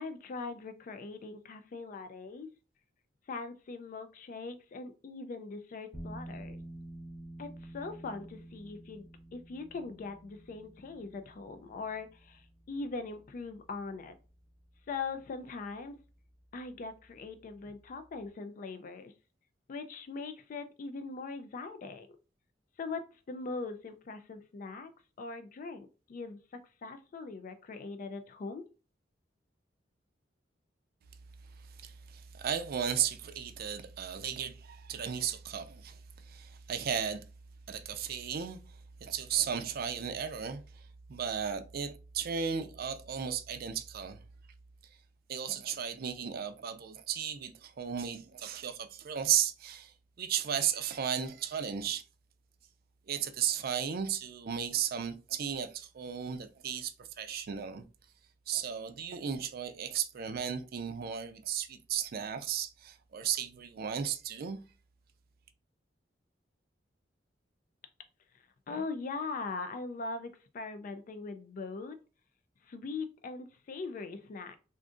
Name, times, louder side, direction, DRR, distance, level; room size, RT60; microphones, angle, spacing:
voice 1, 0.0-2.5 3.3-6.6 7.4-9.1 9.3-14.1 14.9-16.0 16.5-19.1 19.7-22.1 22.8-24.9 25.2-26.4 26.8-28.6 68.7-72.0 72.6-74.6, left 4 dB, 45° left, 0.3 m, -41 dB
sound 1, 5.9-18.3, right 1 dB, ahead, 0.8 m, -51 dB
voice 2, 31.8-37.2 37.7-38.6 39.0-40.8 41.1-44.2 45.3-52.0 53.1-57.8 58.5-64.6, right 8 dB, 55° right, 0.4 m, -35 dB
2.5 x 2.4 x 3.7 m
head